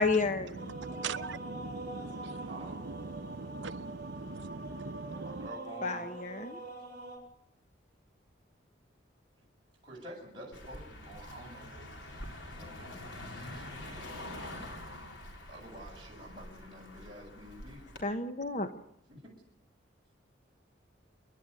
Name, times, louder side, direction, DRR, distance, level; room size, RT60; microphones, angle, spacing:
voice 1, 0.0-0.8 5.8-6.6 18.0-18.7, left 3 dB, 40° left, 1.0 m, -31 dB
sound 1, 0.5-7.2, right 2 dB, 50° right, 7.9 m, -45 dB
voice 2, 0.7-2.5 3.1-5.5, right 4 dB, 70° right, 0.8 m, -41 dB
voice 3, 2.4-2.9 5.2-6.1 9.8-12.2 12.5-14.6 15.5-17.9 19.1-19.2, right 1 dB, 25° right, 6.8 m, -49 dB
Car passing by, 10.5-18.0, left 1 dB, 75° left, 4.0 m, -45 dB
28.5 x 11.0 x 9.7 m
head